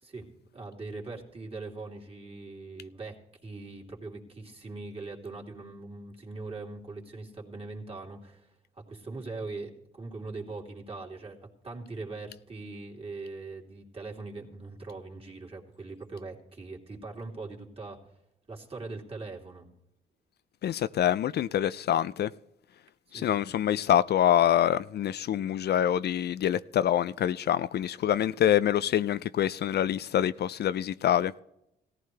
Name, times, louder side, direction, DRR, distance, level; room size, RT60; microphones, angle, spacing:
voice 1, 0.0-3.2 3.4-11.4 11.6-18.0 18.5-19.7 23.1-23.4, right 3 dB, 30° right, 3.1 m, -41 dB
voice 2, 20.6-22.3 23.1-31.3, left 11 dB, 55° left, 0.4 m, -26 dB
17.5 x 14.5 x 3.3 m
cardioid pair, 90°, 20 cm